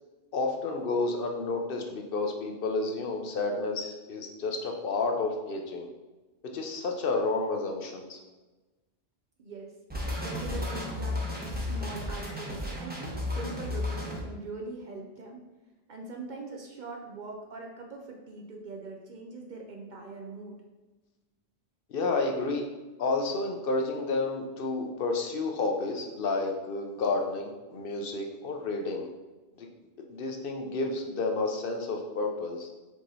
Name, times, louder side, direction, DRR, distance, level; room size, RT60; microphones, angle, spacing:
voice 1, 0.3-5.9 6.5-8.2 21.9-22.6 23.0-29.1 29.6-29.7 30.1-32.7, left 3 dB, 60° left, 2 dB, 0.8 m, -30 dB
voice 2, 9.4-15.4 15.9-20.6, right 3 dB, 55° right, 1 dB, 0.6 m, -42 dB
sound 1, 9.9-14.2, left 1 dB, 10° right, 0.7 m, -33 dB
4.7 x 2.9 x 3.9 m, 1.2 s
omnidirectional pair, 1.1 m